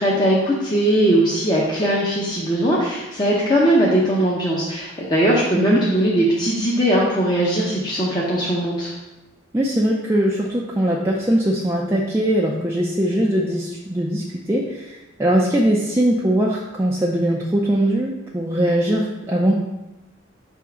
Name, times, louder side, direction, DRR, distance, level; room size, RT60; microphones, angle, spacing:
voice 1, 0.0-8.9, right 1 dB, 20° left, -5 dB, 0.7 m, -19 dB
voice 2, 9.5-19.5, right 1 dB, 10° right, -3 dB, 0.4 m, -21 dB
5.1 x 3.7 x 5.7 m, 1.0 s
head